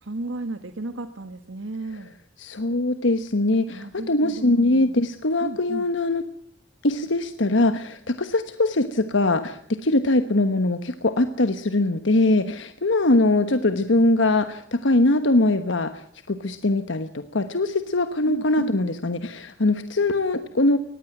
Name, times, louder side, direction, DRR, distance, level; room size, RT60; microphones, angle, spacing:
voice 1, 0.0-2.1 3.7-5.0 5.4-5.9 18.3-18.7, right 2 dB, 85° right, 8 dB, 1.4 m, -34 dB
voice 2, 2.4-6.2 6.8-20.8, left 2 dB, 80° left, 10 dB, 1.2 m, -22 dB
20.0 x 15.0 x 9.2 m, 0.68 s
head